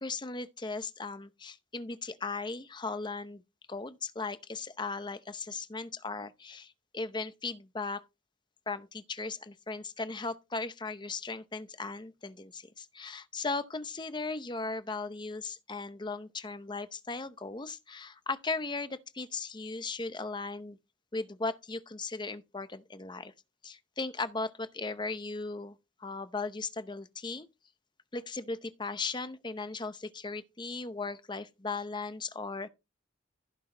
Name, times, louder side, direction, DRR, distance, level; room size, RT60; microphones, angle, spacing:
voice 1, 0.0-3.4 3.7-8.0 8.7-20.8 21.1-23.3 23.6-25.8 26.0-27.5 28.1-32.7, left 3 dB, 25° left, 0.7 m, -37 dB
15.5 x 6.1 x 3.3 m
head